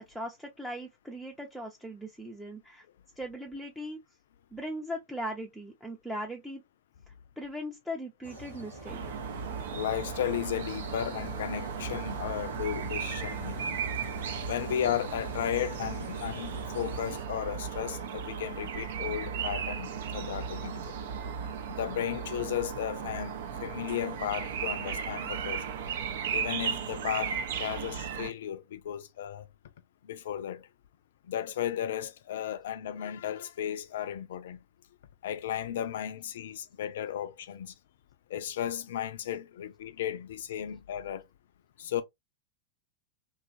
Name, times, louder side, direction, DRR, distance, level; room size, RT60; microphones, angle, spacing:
voice 1, 0.0-2.8 3.2-4.0 4.5-6.6 7.4-9.0, equal, ahead, 0.6 m, -39 dB
sound 1, 8.2-17.2, right 1 dB, 85° right, 1.0 m, -44 dB
sound 2, 8.8-28.3, right 7 dB, 60° right, 0.5 m, -36 dB
voice 2, 9.4-13.8 14.5-21.0 21.7-25.7 26.3-29.5 30.0-30.7 31.2-34.6 35.2-37.7 38.3-41.2 41.8-42.0, left 10 dB, 60° left, 0.4 m, -35 dB
2.9 x 2.3 x 2.5 m
figure-of-eight pair, 90°, 0 cm